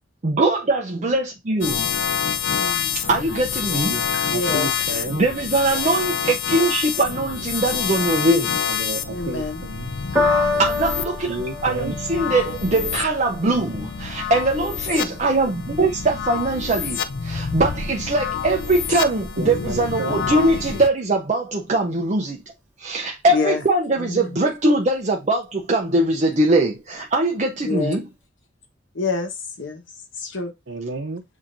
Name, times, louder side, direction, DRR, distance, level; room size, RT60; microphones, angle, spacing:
voice 1, 0.2-1.9 3.1-3.9 5.1-8.6 10.1-11.4 11.6-22.4 22.8-28.1, right 2 dB, 40° right, 0.6 m, -21 dB
sound 1, 1.6-20.9, left 7 dB, 65° left, 0.5 m, -27 dB
voice 2, 2.6-3.0 4.3-5.2 9.1-9.6 23.3-23.6 24.0-24.4 27.6-28.0 28.9-29.3 29.6-29.8 30.2-30.5, left 3 dB, 85° left, 1.1 m, -27 dB
voice 3, 3.9-5.2 8.7-9.9 10.4-10.5 11.3-12.0 19.4-20.2 30.7-31.2, right 2 dB, 85° right, 0.7 m, -31 dB
Piano, 10.1-16.7 17.5-17.6, left 2 dB, 10° right, 1.4 m, -29 dB
7.2 x 2.7 x 2.5 m
head